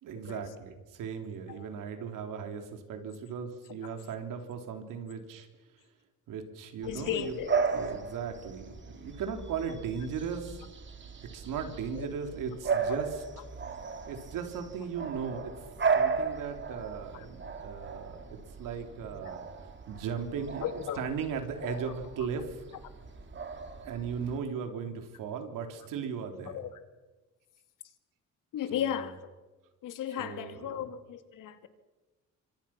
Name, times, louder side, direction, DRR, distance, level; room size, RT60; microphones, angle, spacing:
voice 1, 0.0-5.5 6.3-7.3 7.7-10.6 11.3-13.2 14.1-15.5 15.9-19.5 19.9-22.6 23.8-26.5 28.7-28.8 30.2-30.8, right 6 dB, 85° right, 6 dB, 3.5 m, -37 dB
voice 2, 6.8-7.6 11.9-12.2 17.1-17.3 20.6-21.1 21.6-21.8 26.4-26.8 28.5-29.2 29.8-31.7, left 9 dB, 80° left, 9 dB, 2.5 m, -35 dB
Bark / Bird vocalization bird call bird song, 6.8-24.4, right 5 dB, 35° right, 3.1 m, -36 dB
27.0 x 25.0 x 6.0 m, 1.2 s
cardioid pair, 105°, 31 cm